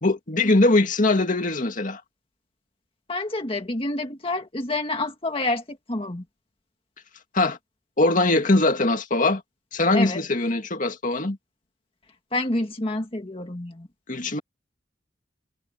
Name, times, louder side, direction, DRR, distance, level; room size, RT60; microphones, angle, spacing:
voice 1, 0.0-2.0 7.3-7.6 8.0-9.4 9.7-11.4 14.1-14.4, left 2 dB, 50° left, 2.2 m, -21 dB
voice 2, 3.1-6.2 9.9-10.2 12.3-13.9, left 2 dB, 30° left, 1.8 m, -28 dB
head